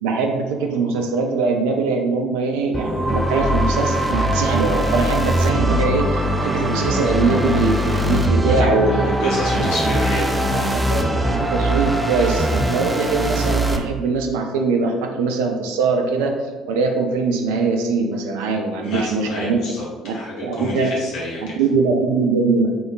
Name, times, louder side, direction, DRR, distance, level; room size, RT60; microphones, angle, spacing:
voice 1, 0.0-9.7 10.9-16.4 16.7-19.6 20.0-20.1 20.4-20.9 21.6-22.7, right 4 dB, 70° right, 3 dB, 0.5 m, -22 dB
sound 1, 2.7-13.8, right 1 dB, 15° right, 0.5 m, -21 dB
voice 2, 8.4-10.7 18.8-19.8 20.1-21.5, left 1 dB, 65° left, -6 dB, 1.4 m, -29 dB
3.8 x 3.5 x 3.8 m, 1.3 s
figure-of-eight pair, 50°, 0 cm